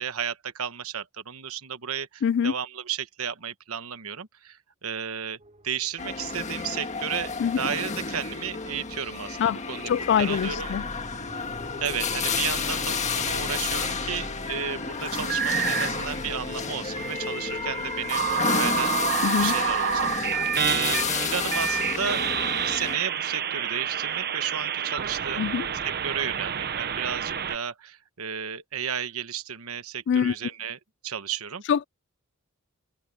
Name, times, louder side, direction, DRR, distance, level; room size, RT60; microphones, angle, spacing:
voice 1, 0.0-5.4 5.6-9.9 10.2-10.7 11.8-18.9 19.4-20.1 20.6-22.2 22.6-25.5 25.8-30.8 31.0-31.6, right 8 dB, 75° right, 1.2 m, -33 dB
voice 2, 2.2-2.5 7.4-7.7 9.4-9.6 9.9-10.9 19.2-19.5 25.4-25.7 30.1-30.4 31.7-31.8, left 7 dB, 55° left, 0.3 m, -24 dB
sound 1, 5.4-8.2 10.2-21.6 21.8-21.9 23.6-24.2, equal, 30° right, 4.9 m, -45 dB
sound 2, 6.0-23.0, left 5 dB, 35° left, 1.7 m, -31 dB
sound 3, 15.1-16.1 17.0-27.6, right 8 dB, 45° right, 0.9 m, -28 dB
head